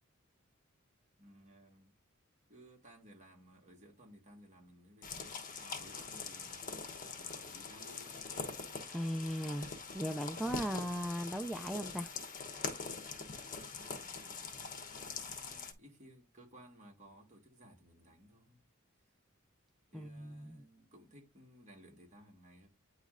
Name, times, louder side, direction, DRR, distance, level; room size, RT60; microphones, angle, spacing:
voice 1, 1.2-1.9 2.5-6.7 7.1-8.2 13.7-18.6 19.9-22.7, equal, 35° right, 1.6 m, -59 dB
sound 1, 5.0-15.7, left 4 dB, 40° left, 1.0 m, -43 dB
voice 2, 8.9-12.1 19.9-20.6, equal, ahead, 0.3 m, -38 dB
9.1 x 3.1 x 3.8 m
head